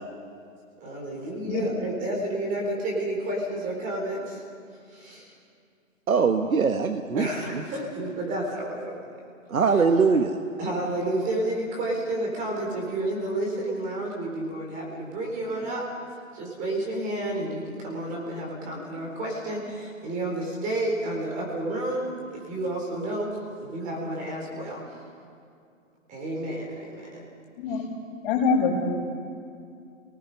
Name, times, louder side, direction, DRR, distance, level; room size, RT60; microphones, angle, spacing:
voice 1, 0.8-4.4 4.9-5.3 7.1-8.9 10.6-15.8 16.3-24.8 26.1-27.2 27.7-27.9, right 1 dB, 20° right, -1 dB, 4.1 m, -30 dB
voice 2, 6.1-7.3 7.5-7.6 9.5-10.4, right 5 dB, 85° right, 6 dB, 1.4 m, -22 dB
voice 3, 28.2-28.7, left 5 dB, 25° left, -10 dB, 6.0 m, -24 dB
27.5 x 19.5 x 5.5 m, 2.4 s
hypercardioid pair, 150°, 41 cm